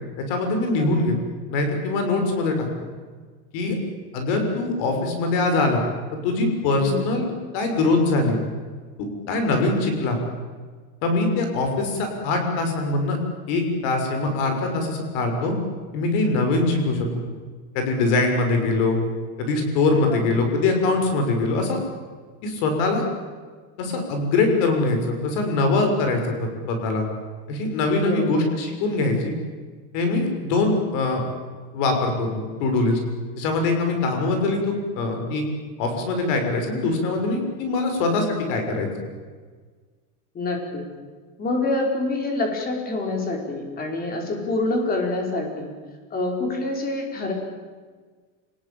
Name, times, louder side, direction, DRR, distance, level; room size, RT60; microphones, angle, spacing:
voice 1, 0.2-1.2 1.5-2.7 3.5-3.8 4.1-5.8 6.1-8.4 9.0-10.2 11.0-13.2 13.5-15.5 15.9-17.2 17.7-19.0 19.4-21.8 22.4-23.0 23.8-27.0 27.5-29.3 29.9-31.3 31.7-33.0 33.4-35.4 35.8-38.9, left 3 dB, 55° left, 5 dB, 6.4 m, -23 dB
voice 2, 0.8-1.1 6.7-7.0 20.1-20.3 28.0-28.4 40.3-40.8 41.4-45.7 46.1-47.3, left 2 dB, 20° left, 2 dB, 5.1 m, -26 dB
29.0 x 20.0 x 9.0 m, 1.5 s
cardioid pair, 175°, 43 cm